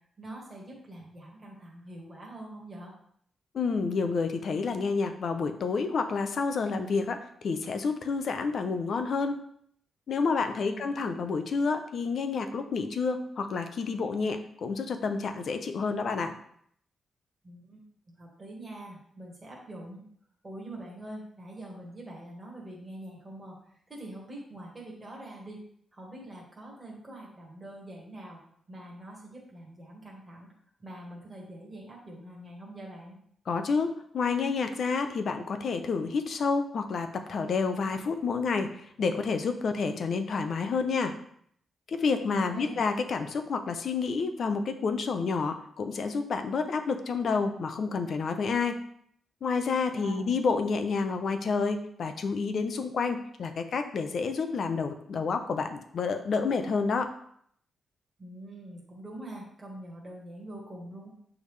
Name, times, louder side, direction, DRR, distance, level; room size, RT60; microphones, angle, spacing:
voice 1, 0.2-2.9 10.6-11.0 17.4-20.0 20.4-23.6 23.9-25.6 25.9-28.4 28.7-30.5 30.8-33.2 42.3-42.8 49.9-50.4 58.2-61.1, right 1 dB, 15° right, -3 dB, 1.6 m, -44 dB
voice 2, 3.5-9.4 10.1-16.3 33.5-41.1 41.9-48.8 49.4-57.1, left 4 dB, 50° left, 7 dB, 0.6 m, -29 dB
8.2 x 3.5 x 3.3 m, 0.66 s
wide cardioid pair, 170°, 0 cm